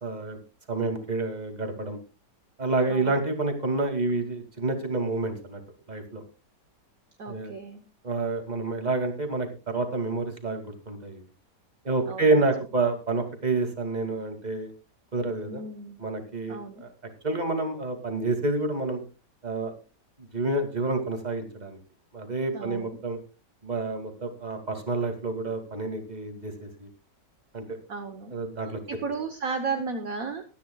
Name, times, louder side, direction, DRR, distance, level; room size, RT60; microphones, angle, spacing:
voice 1, 0.0-0.4 0.7-2.0 2.6-5.6 5.9-6.2 7.3-7.5 8.0-11.2 11.8-14.7 15.1-15.6 16.0-16.9 17.2-19.0 19.4-19.7 20.3-21.8 22.1-23.2 23.6-26.9 27.5-27.6 28.3-28.8, right 3 dB, 25° right, 6 dB, 2.4 m, -28 dB
voice 2, 2.9-3.2 7.2-7.8 12.1-12.5 15.5-16.0 16.5-16.8 22.5-23.0 27.9-28.3 28.9-30.4, right 4 dB, 55° right, 6 dB, 1.5 m, -34 dB
23.0 x 10.0 x 2.3 m, 0.29 s
omnidirectional pair, 1.9 m